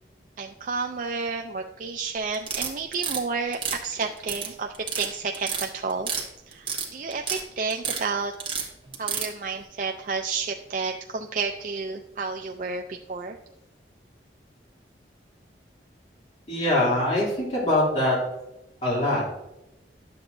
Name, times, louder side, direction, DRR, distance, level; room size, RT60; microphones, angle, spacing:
voice 1, 0.4-6.1 6.5-8.3 9.0-13.4, right 4 dB, 45° right, 3 dB, 0.4 m, -31 dB
sound 1, 2.3-3.2 3.5-4.5 4.7-5.1 5.3-6.2 6.5-7.4 7.7-8.0 8.4-9.3, right 6 dB, 30° right, 1.3 m, -29 dB
voice 2, 16.5-18.2 18.8-19.3, left 1 dB, 35° left, -6 dB, 2.8 m, -23 dB
11.5 x 7.7 x 2.6 m, 0.93 s
head